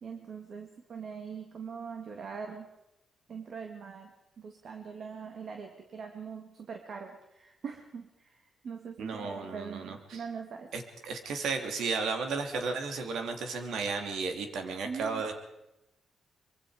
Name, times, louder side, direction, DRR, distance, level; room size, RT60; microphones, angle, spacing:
voice 1, 0.0-2.7 3.3-4.1 4.4-10.7 14.6-15.2, right 6 dB, 50° right, 4 dB, 2.0 m, -42 dB
voice 2, 9.0-10.2 10.7-15.3, right 4 dB, 85° right, 5 dB, 2.9 m, -34 dB
24.5 x 23.5 x 5.0 m, 0.89 s
cardioid pair, 140°, 0 cm